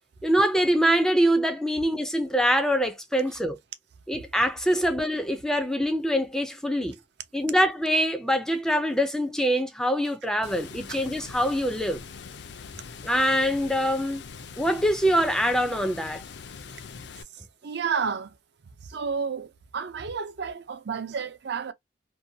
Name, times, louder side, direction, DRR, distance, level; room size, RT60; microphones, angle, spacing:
voice 1, 0.2-3.6 4.1-7.0 7.3-12.0 13.0-14.2 14.6-16.2, equal, 5° left, 0.4 m, -24 dB
Water, 10.4-17.2, left 5 dB, 65° left, 0.5 m, -42 dB
voice 2, 17.3-18.4 18.6-21.7, right 6 dB, 60° right, 0.5 m, -31 dB
2.7 x 2.2 x 2.6 m
head